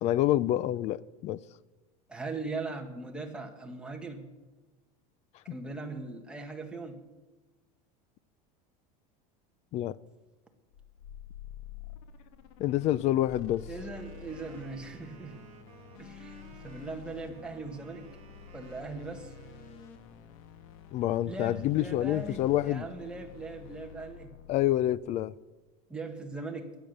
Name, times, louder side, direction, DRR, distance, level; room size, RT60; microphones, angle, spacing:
voice 1, 0.0-1.4 5.5-5.6 9.7-10.0 12.6-13.7 20.9-22.9 24.5-25.3, left 13 dB, 40° left, 0.4 m, -27 dB
voice 2, 2.1-4.3 5.4-7.0 13.7-15.5 16.0-18.1 18.5-19.3 21.3-24.3 25.9-26.7, right 3 dB, 5° right, 1.5 m, -40 dB
sound 1, 10.7-25.3, left 10 dB, 75° left, 1.5 m, -49 dB
Wind instrument woodwind instrument, 13.7-20.0, right 9 dB, 35° right, 1.6 m, -55 dB
21.5 x 8.9 x 6.6 m
supercardioid pair, 150°, 18 cm